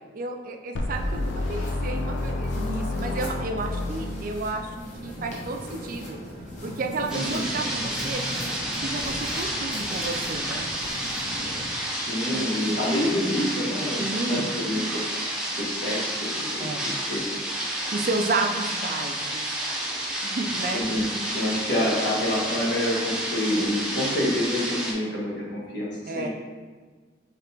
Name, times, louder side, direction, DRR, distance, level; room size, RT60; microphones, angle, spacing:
voice 1, 0.1-4.7 5.0-6.2 6.6-8.4 8.8-10.7 12.3-12.8 14.0-14.5 16.6-16.8 17.8-19.6 20.2-20.8 26.1-26.3, right 3 dB, 50° right, 4 dB, 0.4 m, -31 dB
sound 1, 0.8-4.8, left 2 dB, 85° left, 0.4 m, -29 dB
sound 2, 0.9-11.7, left 1 dB, 40° left, 1.0 m, -39 dB
voice 2, 7.1-7.5 11.9-17.3 20.7-26.3, left 1 dB, 65° left, -5 dB, 1.4 m, -28 dB
sound 3, 7.1-24.9, right 1 dB, 5° right, 0.6 m, -30 dB
4.9 x 3.2 x 3.3 m, 1.4 s
head